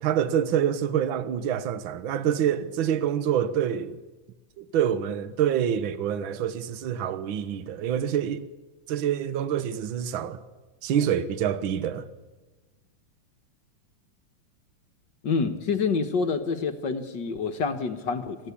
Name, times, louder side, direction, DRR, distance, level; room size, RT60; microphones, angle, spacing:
voice 1, 0.0-4.0 4.6-8.4 8.9-10.4 10.8-12.1, right 9 dB, 85° right, 1.1 m, -26 dB
voice 2, 15.2-18.4, left 5 dB, 50° left, 1.4 m, -27 dB
27.0 x 17.5 x 8.5 m
omnidirectional pair, 3.6 m